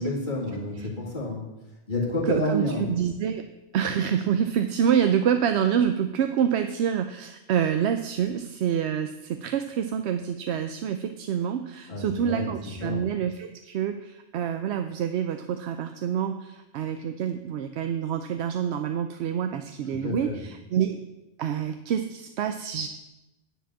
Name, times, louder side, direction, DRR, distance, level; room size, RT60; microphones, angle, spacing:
voice 1, 0.0-1.4 1.9-2.9 11.9-12.5 12.8-13.1 19.9-20.4, left 1 dB, 45° left, -3 dB, 2.0 m, -29 dB
voice 2, 2.2-3.5 3.7-21.0 21.4-22.9, right 8 dB, 70° right, 8 dB, 0.8 m, -27 dB
10.0 x 4.8 x 7.3 m, 0.97 s
omnidirectional pair, 1.2 m